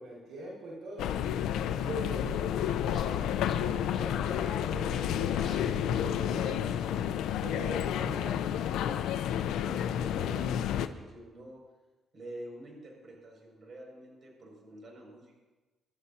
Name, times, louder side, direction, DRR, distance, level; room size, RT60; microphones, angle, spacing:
voice 1, 0.0-1.1 1.9-3.2 3.6-7.0 7.4-8.4, right 1 dB, 80° right, -4 dB, 5.0 m, -42 dB
sound 1, 1.0-10.9, left 10 dB, 85° left, 0.6 m, -30 dB
sound 2, 1.8-6.7, left 5 dB, 50° left, 3.4 m, -48 dB
voice 2, 9.6-11.6 12.1-15.4, right 1 dB, 45° right, 0 dB, 6.3 m, -47 dB
27.0 x 12.5 x 2.9 m, 1.2 s
cardioid pair, 90°, 0 cm